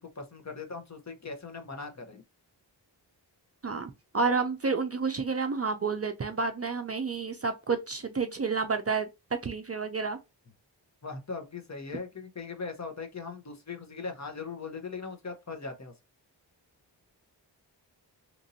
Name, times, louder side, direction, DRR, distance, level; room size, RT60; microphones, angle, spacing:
voice 1, 0.0-2.2 11.0-15.9, left 4 dB, 40° left, 0.9 m, -39 dB
voice 2, 3.6-9.1 9.4-10.2, right 4 dB, 35° right, 0.5 m, -30 dB
3.0 x 2.6 x 2.6 m
wide cardioid pair, 70°, 43 cm